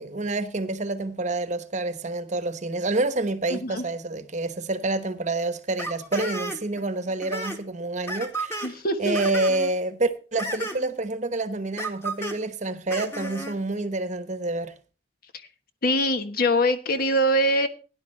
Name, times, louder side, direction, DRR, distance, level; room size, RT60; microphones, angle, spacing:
voice 1, 0.0-8.7 9.0-14.7, right 2 dB, 40° right, 1.0 m, -28 dB
voice 2, 3.5-3.8 8.6-9.2 15.8-17.7, equal, 55° left, 1.3 m, -23 dB
sound 1, 5.8-6.8 7.1-7.6 8.1-8.7 9.1-9.7 10.4-10.9 11.8-12.4 12.9-13.6, right 1 dB, 15° left, 1.8 m, -33 dB
17.0 x 10.5 x 3.2 m
head